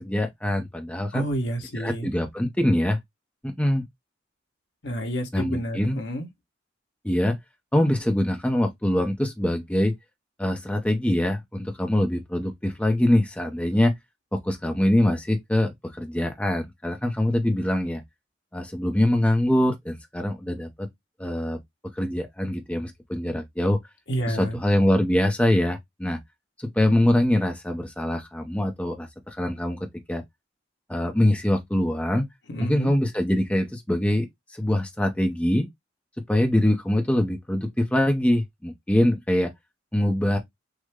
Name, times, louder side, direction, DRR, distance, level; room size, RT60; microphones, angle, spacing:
voice 1, 0.0-1.2 1.7-3.0 3.4-3.8 5.3-6.0 7.0-7.4 7.7-9.9 10.4-13.9 14.3-18.0 18.5-20.9 21.2-21.6 21.9-23.8 24.3-26.2 26.6-30.2 30.9-32.3 32.6-34.3 34.5-35.7 36.3-39.5 39.9-40.4, left 1 dB, 5° left, 0.6 m, -24 dB
voice 2, 1.1-2.1 4.8-6.3 24.1-24.6 32.5-32.9, right 1 dB, 65° left, 1.5 m, -29 dB
6.3 x 2.1 x 3.6 m
head